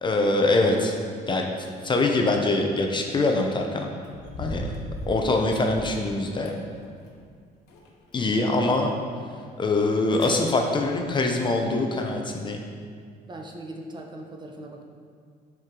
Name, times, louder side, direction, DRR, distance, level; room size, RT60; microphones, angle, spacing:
voice 1, 0.0-0.9 1.3-1.5 1.8-3.9 4.4-4.7 5.1-6.6 8.1-8.9 9.6-12.6, left 2 dB, 30° left, 2 dB, 0.6 m, -23 dB
sound 1, 4.0-6.0 6.5-7.3 7.7-8.5 8.9-9.0 9.8-9.9 10.1-10.4 10.9-11.1 11.6-11.7, equal, 80° left, 1.0 m, -38 dB
voice 2, 13.3-14.8, right 1 dB, 25° right, 2 dB, 0.8 m, -39 dB
7.7 x 4.6 x 3.7 m, 2.1 s
cardioid pair, 110°, 17 cm